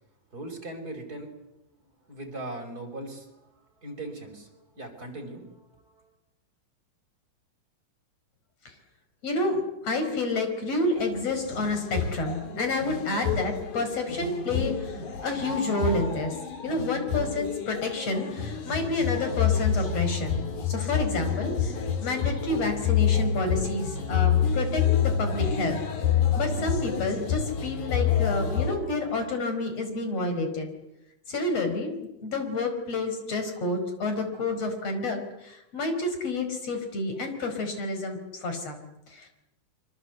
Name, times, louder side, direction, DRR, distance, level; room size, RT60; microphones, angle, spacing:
voice 1, 0.3-1.3 2.1-3.3 3.8-6.1, right 2 dB, 30° right, 3 dB, 5.7 m, -39 dB
voice 2, 9.2-16.3 16.6-25.8 26.4-30.7 31.3-39.3, left 2 dB, 50° left, 6 dB, 5.7 m, -29 dB
sound 1, 11.0-28.8, left 7 dB, 70° left, 4.0 m, -28 dB
26.5 x 24.5 x 8.2 m, 0.88 s
omnidirectional pair, 3.6 m